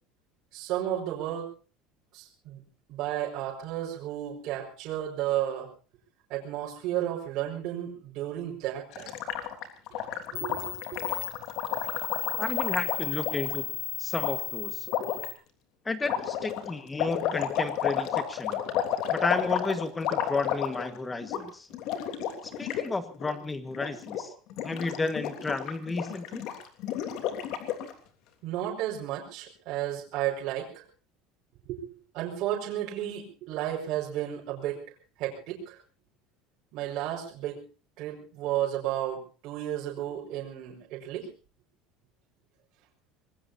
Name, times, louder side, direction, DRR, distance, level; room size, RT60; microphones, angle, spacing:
voice 1, 0.5-1.5 2.1-2.6 2.9-5.7 6.3-9.2 10.3-11.0 11.7-12.0 28.4-30.8 31.7-34.8 35.2-35.8 36.7-37.6 38.0-41.3, right 12 dB, 50° right, -3 dB, 5.1 m, -33 dB
Gurgling, 8.9-13.6 14.2-14.3 14.9-15.3 16.0-21.0 21.2-21.4 21.7-22.9 23.1-23.3 23.7-24.2 24.5-27.9, left 10 dB, 50° left, 3.2 m, -32 dB
sound 1, 9.9-10.0 10.3-15.3, left 13 dB, 80° left, 5.6 m, -35 dB
voice 2, 12.4-14.9 15.8-18.6 19.1-21.7 22.4-24.3 24.6-26.5, left 3 dB, 10° left, 11 dB, 1.5 m, -32 dB
25.5 x 20.5 x 2.7 m, 0.37 s
cardioid pair, 170°, 0 cm